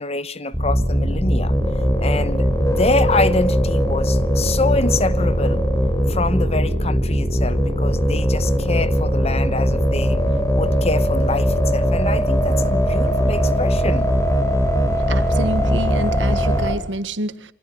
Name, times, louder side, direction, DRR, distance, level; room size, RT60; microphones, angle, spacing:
voice 1, 0.0-1.5 2.0-5.6 6.1-10.2 10.5-14.1, left 2 dB, 35° left, 1.2 m, -25 dB
sound 1, 0.5-16.7, equal, 15° left, 4.9 m, -19 dB
voice 2, 15.1-17.5, right 1 dB, 90° right, 1.7 m, -27 dB
28.5 x 25.0 x 5.6 m
head